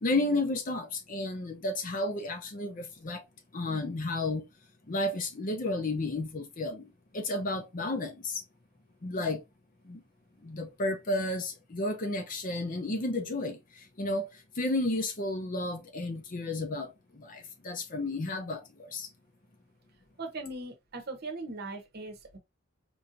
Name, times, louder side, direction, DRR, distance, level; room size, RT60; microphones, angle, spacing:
voice 1, 0.0-3.2 3.5-4.4 4.9-6.9 7.1-8.4 9.0-9.4 9.9-10.0 10.4-13.6 14.0-14.3 14.6-16.9 17.1-19.1, left 2 dB, 40° left, 0.7 m, -32 dB
voice 2, 20.2-22.4, right 2 dB, 50° right, 0.8 m, -39 dB
4.6 x 2.7 x 2.5 m
head